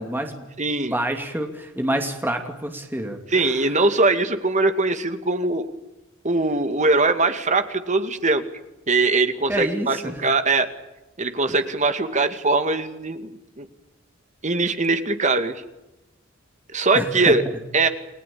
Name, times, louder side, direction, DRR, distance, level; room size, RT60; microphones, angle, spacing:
voice 1, 0.0-0.5 0.9-3.7 9.5-10.2 16.9-17.3, right 1 dB, 10° right, 4 dB, 2.7 m, -28 dB
voice 2, 0.6-0.9 3.3-5.7 6.2-8.4 8.9-10.7 11.2-13.7 14.4-15.6 16.7-17.4 17.7-17.9, right 3 dB, 35° right, 8 dB, 2.3 m, -21 dB
29.5 x 20.0 x 8.7 m, 0.97 s
head